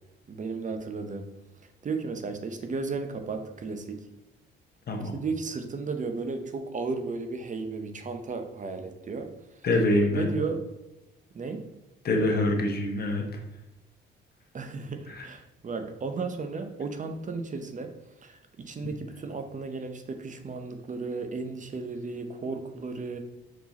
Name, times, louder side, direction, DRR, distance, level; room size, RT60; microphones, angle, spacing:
voice 1, 0.3-1.3 1.8-4.1 5.1-9.3 10.1-10.6 11.3-11.6 14.5-17.9 18.2-23.2, right 4 dB, 40° right, 7 dB, 0.9 m, -34 dB
voice 2, 4.9-5.2 9.6-10.3 12.0-13.2 15.1-15.3, left 1 dB, 55° left, 2 dB, 1.5 m, -25 dB
6.1 x 4.9 x 4.1 m, 0.95 s
cardioid pair, 90°, 20 cm